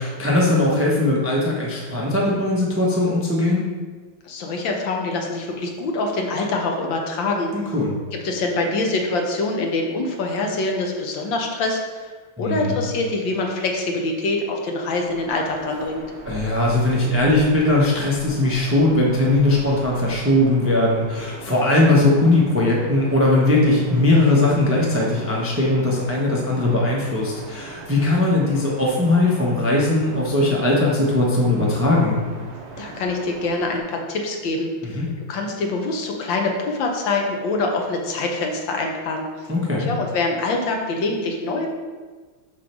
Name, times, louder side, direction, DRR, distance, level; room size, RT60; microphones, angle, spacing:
voice 1, 0.0-3.7 7.5-7.9 12.4-12.8 16.2-32.2 34.8-35.1 39.5-39.9, left 2 dB, 20° right, -4 dB, 0.4 m, -19 dB
voice 2, 4.2-7.5 8.1-12.1 12.4-16.0 32.8-39.5 39.9-41.7, left 2 dB, 65° left, 2 dB, 1.6 m, -25 dB
sound 1, 15.0-33.8, right 3 dB, 80° right, 1.9 m, -40 dB
7.4 x 3.3 x 6.0 m, 1.4 s
omnidirectional pair, 2.3 m